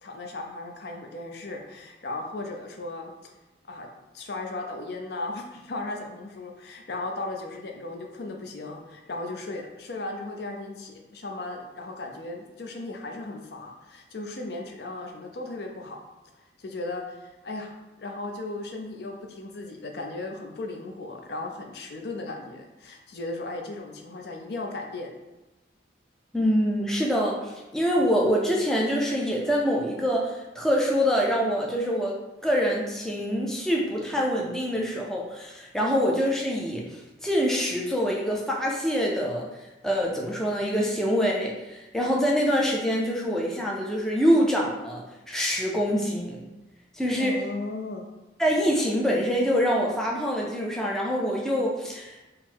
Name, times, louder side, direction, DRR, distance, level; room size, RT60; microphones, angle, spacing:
voice 1, 0.0-3.3 3.7-3.9 4.1-16.0 16.6-25.1 35.8-36.0 47.2-48.1, left 2 dB, 60° left, 2 dB, 0.5 m, -36 dB
voice 2, 26.3-32.2 32.4-39.5 39.8-46.4 46.9-47.4 48.4-52.3, equal, 5° left, -3 dB, 0.4 m, -25 dB
3.8 x 2.1 x 4.3 m, 1.1 s
head